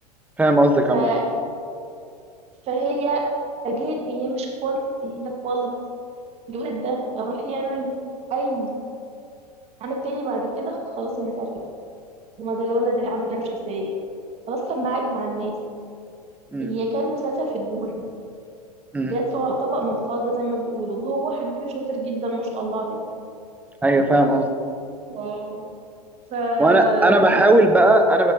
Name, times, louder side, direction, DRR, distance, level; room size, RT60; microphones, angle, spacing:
voice 1, 0.4-1.1 16.5-16.7 18.9-19.2 23.8-24.5 26.6-28.3, right 1 dB, 5° right, 6 dB, 0.5 m, -17 dB
voice 2, 0.9-1.2 2.6-3.3 3.6-5.7 6.5-7.9 8.3-8.7 9.8-11.5 12.4-13.9 14.5-15.5 16.6-18.0 19.0-23.0 25.1-25.7 26.3-27.4, right 2 dB, 30° right, 1 dB, 1.0 m, -26 dB
7.2 x 7.1 x 2.7 m, 2.4 s
figure-of-eight pair, 95°, 21 cm